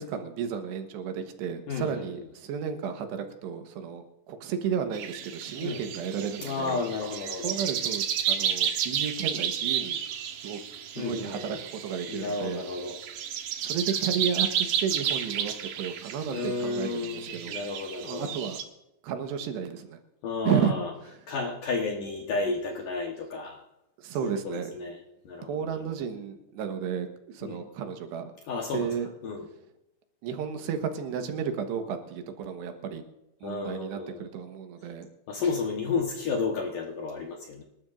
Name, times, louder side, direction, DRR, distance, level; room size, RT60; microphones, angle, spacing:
voice 1, 0.0-6.8 7.4-10.0 10.4-10.6 11.0-12.6 13.6-17.6 18.0-18.6 19.0-20.0 20.5-20.8 24.0-24.7 25.4-27.1 27.3-28.3 28.7-29.1 30.2-33.0 33.4-35.1, right 7 dB, 85° right, 6 dB, 3.4 m, -32 dB
voice 2, 1.7-2.2 5.6-5.8 6.3-7.6 11.0-11.6 12.1-13.0 16.3-18.3 20.2-20.9 21.3-23.6 24.2-25.0 25.3-25.9 27.4-27.6 28.5-28.9 29.2-29.5 33.4-34.3 35.3-37.6, left 4 dB, 60° left, 0 dB, 2.5 m, -32 dB
sound 1, 4.9-18.6, right 9 dB, 65° right, 2.2 m, -32 dB
26.5 x 12.5 x 2.6 m, 0.92 s
omnidirectional pair, 4.8 m